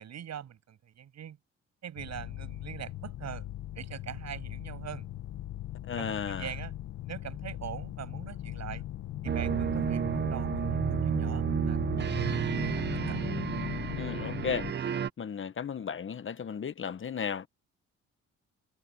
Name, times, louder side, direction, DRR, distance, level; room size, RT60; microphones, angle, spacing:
voice 1, 0.0-1.4 1.8-3.5 3.8-5.1 6.0-6.7 7.1-8.8 9.2-12.3 12.6-13.2, right 9 dB, 60° right, 6.9 m, -43 dB
sound 1, 2.0-14.7, left 13 dB, 75° left, 1.5 m, -39 dB
voice 2, 5.8-6.5 13.9-14.7 15.2-17.5, left 7 dB, 40° left, 1.3 m, -35 dB
sound 2, 9.3-15.1, right 8 dB, 35° right, 0.7 m, -31 dB
cardioid pair, 90°, 30 cm